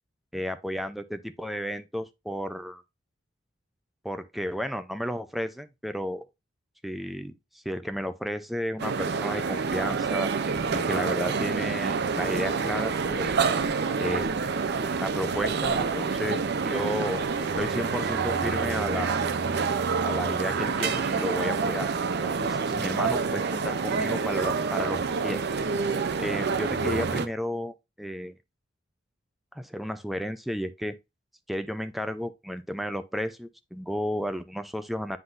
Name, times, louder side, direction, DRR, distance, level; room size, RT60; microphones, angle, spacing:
voice 1, 0.3-2.8 4.0-6.3 6.8-13.4 14.0-14.5 15.0-19.2 20.0-21.9 22.2-25.4 25.8-28.3 29.5-31.0 31.5-35.2, equal, ahead, 0.5 m, -33 dB
sound 1, 8.8-27.3, right 5 dB, 60° right, 0.6 m, -27 dB
9.7 x 3.9 x 2.5 m
head